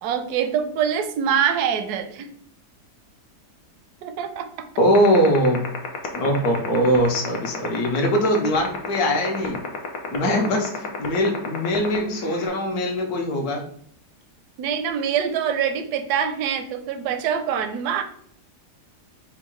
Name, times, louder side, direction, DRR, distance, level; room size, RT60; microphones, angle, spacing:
voice 1, 0.0-2.3 4.0-4.5 14.6-18.0, right 8 dB, 75° right, 8 dB, 1.1 m, -24 dB
voice 2, 4.8-5.6 6.1-9.6 10.1-13.6, equal, 70° left, 2 dB, 1.4 m, -21 dB
sound 1, 4.9-12.5, left 10 dB, 85° left, 1.4 m, -29 dB
4.7 x 2.3 x 4.5 m, 0.64 s
omnidirectional pair, 1.7 m